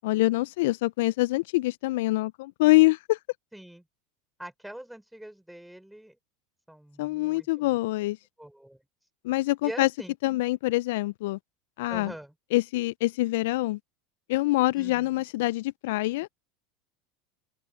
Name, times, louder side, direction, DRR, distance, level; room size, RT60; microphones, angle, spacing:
voice 1, 0.0-3.2 7.0-8.2 9.2-9.9 10.2-11.4 11.8-12.1 12.5-13.8 14.3-16.4, left 19 dB, 65° left, 0.7 m, -25 dB
voice 2, 3.5-3.8 4.4-6.2 6.7-7.7 8.4-8.8 9.6-10.1 11.9-12.3 14.8-15.3, right 1 dB, 5° right, 6.2 m, -43 dB
open air
hypercardioid pair, 80°, 0 cm